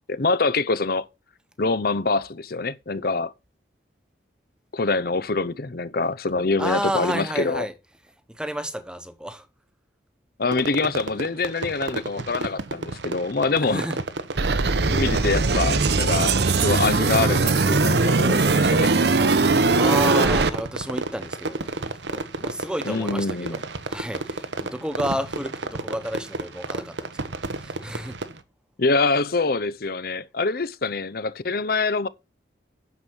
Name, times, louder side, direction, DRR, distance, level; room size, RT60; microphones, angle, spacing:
voice 1, 0.1-1.0 1.6-3.3 4.7-7.7 10.4-13.9 14.9-16.3 16.6-18.9 22.8-23.6 28.8-32.1, left 3 dB, 55° left, 0.8 m, -25 dB
voice 2, 6.6-7.7 8.3-9.5 13.6-14.0 19.7-21.7 22.1-23.6 23.9-28.2, equal, 5° right, 1.1 m, -31 dB
Fireworks, 10.5-28.4, right 3 dB, 90° right, 1.1 m, -32 dB
sound 1, 14.4-20.5, right 3 dB, 65° right, 0.9 m, -20 dB
9.5 x 7.2 x 6.3 m
head